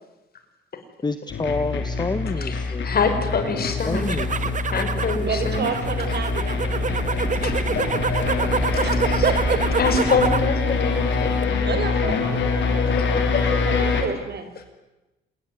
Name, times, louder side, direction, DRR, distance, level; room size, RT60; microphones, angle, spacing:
voice 1, 1.0-2.9 3.5-4.6, left 3 dB, 20° left, 10 dB, 1.5 m, -28 dB
sound 1, 1.3-14.0, left 4 dB, 70° left, 5.6 m, -25 dB
voice 2, 2.4-4.2 4.7-5.6 7.4-7.8 8.7-9.2 9.8-11.7 13.0-13.1 13.3-13.4, left 5 dB, 50° left, 7 dB, 5.9 m, -26 dB
sound 2, 3.8-10.5 10.9-11.4, right 5 dB, 40° right, 1.7 m, -27 dB
voice 3, 4.9-8.5 8.8-9.6 11.6-14.5, right 6 dB, 55° right, 9 dB, 5.3 m, -31 dB
27.0 x 21.5 x 9.5 m, 1.0 s
cardioid pair, 90°, 20 cm